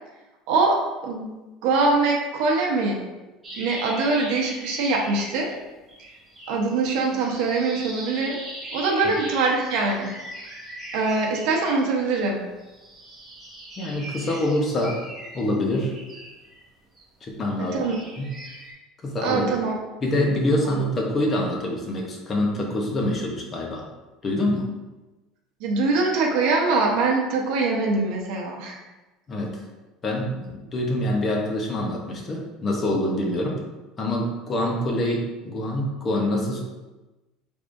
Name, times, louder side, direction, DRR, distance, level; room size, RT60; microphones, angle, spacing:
voice 1, 0.5-1.3 1.6-3.0 3.6-5.5 6.5-8.4 8.7-10.1 10.9-12.4 17.6-18.0 19.2-19.7 25.6-28.8, right 3 dB, 65° right, -1 dB, 0.7 m, -23 dB
sound 1, 3.4-5.6 5.9-12.2 12.6-17.0 17.5-18.7, right 1 dB, 15° right, 1.0 m, -40 dB
voice 2, 13.8-15.0 15.3-15.9 17.2-17.9 18.2-18.3 19.0-19.5 20.0-23.8 24.2-24.7 29.3-29.6 30.0-33.6 34.0-36.6, left 1 dB, 25° left, 0 dB, 0.8 m, -25 dB
4.8 x 3.5 x 2.6 m, 1.1 s
cardioid pair, 160°, 0 cm